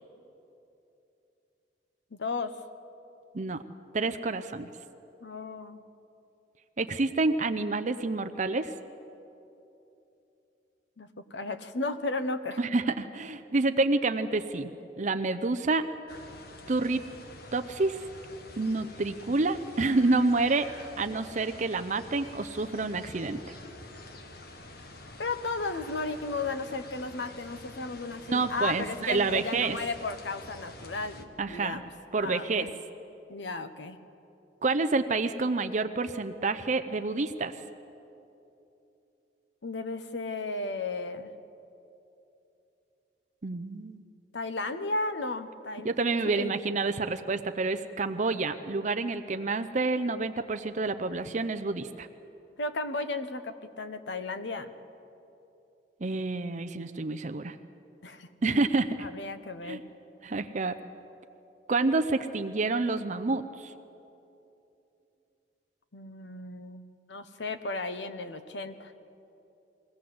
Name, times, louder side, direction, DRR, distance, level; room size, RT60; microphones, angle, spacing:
voice 1, 2.1-2.6 5.2-5.8 11.0-12.6 25.2-31.9 32.2-32.7 33.3-34.0 39.6-41.3 44.3-46.0 46.2-46.5 52.6-54.7 58.0-58.3 59.0-59.8 65.9-66.8 67.1-68.9, left 3 dB, 85° left, 10 dB, 1.1 m, -34 dB
voice 2, 3.9-4.7 6.8-8.7 12.6-14.7 15.0-15.9 16.7-17.0 17.5-18.0 18.6-20.7 21.0-23.4 28.3-29.8 31.4-31.8 32.1-32.7 34.6-37.5 43.4-44.0 45.8-52.1 56.0-57.6 58.4-59.1 59.6-59.8 60.2-60.8 61.7-63.7, right 3 dB, 45° right, 9 dB, 0.6 m, -28 dB
sound 1, 16.1-31.2, left 2 dB, 60° left, 1.4 m, -47 dB
22.0 x 17.0 x 7.8 m, 2.9 s
head